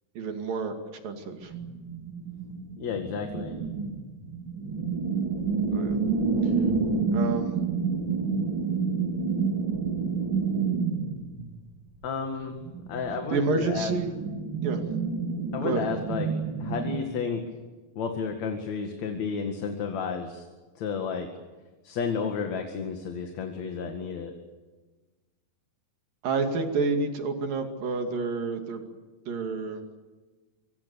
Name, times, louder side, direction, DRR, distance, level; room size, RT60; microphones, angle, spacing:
voice 1, 0.2-0.8 1.0-1.5 5.7-6.0 7.1-7.5 13.3-14.1 14.6-14.8 15.6-15.8 26.2-28.8 29.3-29.8, right 4 dB, 90° right, 5 dB, 4.2 m, -29 dB
sound 1, 1.4-11.6 12.5-17.0, right 5 dB, 35° right, 3.7 m, -29 dB
voice 2, 2.8-3.6 12.0-12.6 12.9-13.9 15.5-16.3 16.6-17.4 18.0-20.5 20.7-21.3 21.8-24.3, left 5 dB, 60° left, 4 dB, 3.2 m, -31 dB
26.5 x 25.0 x 7.1 m, 1.3 s
omnidirectional pair, 3.8 m